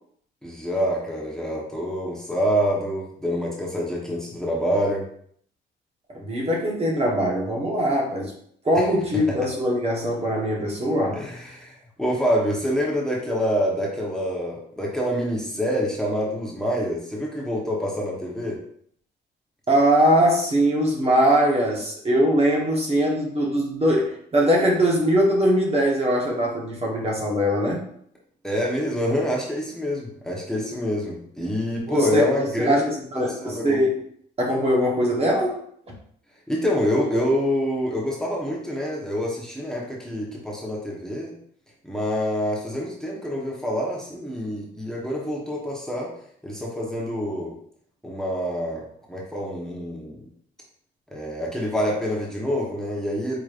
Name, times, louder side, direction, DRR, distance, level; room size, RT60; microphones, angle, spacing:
voice 1, 0.4-5.1 8.7-8.9 9.4-9.5 11.1-11.7 12.0-18.6 28.4-32.9 33.1-33.8 36.5-41.3 41.8-46.1 46.4-47.5 48.0-50.2 51.1-53.4, equal, 5° left, -3 dB, 1.0 m, -26 dB
voice 2, 6.1-8.3 8.6-11.2 19.7-27.8 31.9-32.3 32.6-34.0 34.4-35.6, equal, 30° right, -2 dB, 1.1 m, -21 dB
4.9 x 3.0 x 2.5 m, 0.64 s
cardioid pair, 90°, 20 cm